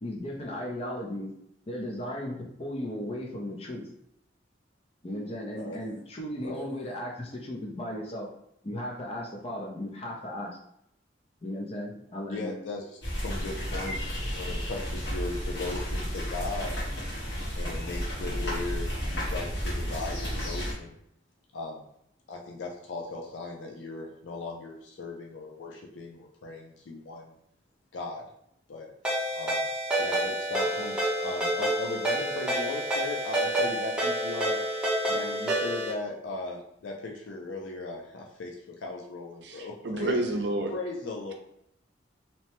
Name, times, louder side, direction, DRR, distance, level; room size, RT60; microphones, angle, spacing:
voice 1, 0.0-1.3 1.7-3.9 5.0-8.3 8.6-10.6 11.4-12.6, left 1 dB, 35° left, 0 dB, 0.5 m, -36 dB
voice 2, 12.2-16.8 17.3-21.0 21.5-21.8 22.3-27.3 27.9-28.3 28.7-28.9 29.4-29.6 30.0-34.6 35.1-40.2 40.7-41.3, left 3 dB, 85° left, 0 dB, 0.4 m, -37 dB
sound 1, 13.0-20.7, equal, 65° left, 1.4 m, -32 dB
Ringtone, 29.0-35.9, right 1 dB, 5° right, 0.7 m, -28 dB
voice 3, 39.4-40.7, right 1 dB, 65° right, 3 dB, 0.5 m, -29 dB
2.9 x 2.1 x 2.9 m, 0.76 s
head